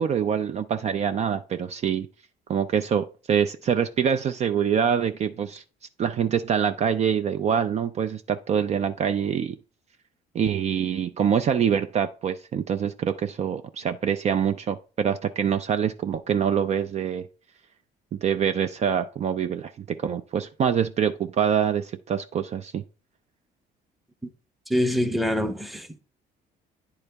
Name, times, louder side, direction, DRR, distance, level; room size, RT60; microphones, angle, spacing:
voice 1, 0.0-2.1 2.5-5.6 6.0-9.6 10.3-17.3 18.1-22.8, right 8 dB, 40° right, 0.4 m, -25 dB
voice 2, 24.7-26.0, equal, ahead, 0.7 m, -25 dB
9.7 x 4.0 x 3.4 m
cardioid pair, 110°, 17 cm